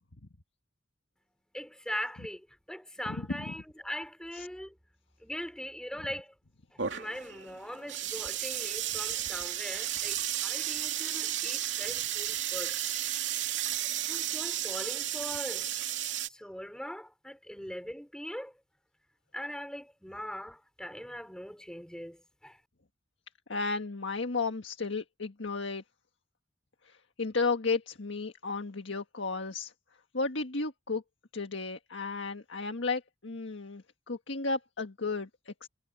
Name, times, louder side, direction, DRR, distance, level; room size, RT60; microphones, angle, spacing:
voice 1, 1.5-4.7 5.2-6.3 6.9-12.8 14.1-15.7 16.3-18.5 19.3-22.6, equal, 5° left, 5.1 m, -41 dB
sound 1, 6.8-16.3, right 11 dB, 75° right, 2.5 m, -33 dB
voice 2, 23.5-25.8 26.8-29.7 30.1-31.0 31.3-35.7, left 4 dB, 90° left, 1.6 m, -33 dB
head